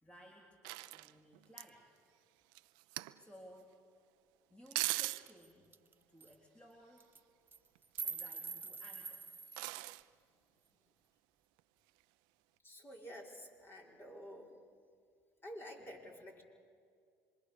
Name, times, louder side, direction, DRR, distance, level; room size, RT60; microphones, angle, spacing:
voice 1, 0.0-0.6 0.9-1.9 2.8-3.8 4.5-5.7 6.1-7.1 8.0-9.3, equal, 15° left, -2 dB, 3.7 m, -59 dB
sound 1, 0.6-1.7 2.5-3.2 4.7-5.3 7.7-8.3 9.5-10.0 11.6-11.7, right 20 dB, 80° right, 0.6 m, -39 dB
sound 2, 5.1-5.2 5.4-5.5 5.7-5.9 6.2-6.3 7.0-7.2 7.5-9.8, right 5 dB, 25° right, 0.9 m, -44 dB
voice 2, 12.6-14.5 15.4-16.4, equal, 30° left, 0 dB, 5.3 m, -50 dB
27.0 x 23.0 x 7.0 m, 2.3 s
supercardioid pair, 75°, 7 cm